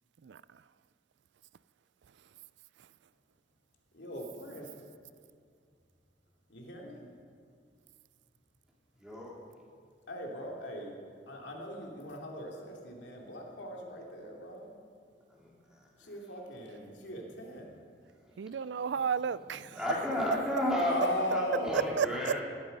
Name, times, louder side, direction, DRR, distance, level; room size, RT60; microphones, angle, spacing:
voice 1, 3.9-4.7 6.5-7.1 10.1-11.0 11.3-14.7 16.0-17.8 20.8-22.2, left 1 dB, 80° left, 2.8 m, -38 dB
voice 2, 9.0-9.3 15.3-16.1 19.7-22.4, left 1 dB, 5° right, 3.7 m, -33 dB
voice 3, 18.4-19.8 21.7-22.4, right 7 dB, 75° right, 0.4 m, -32 dB
19.0 x 13.0 x 5.4 m
head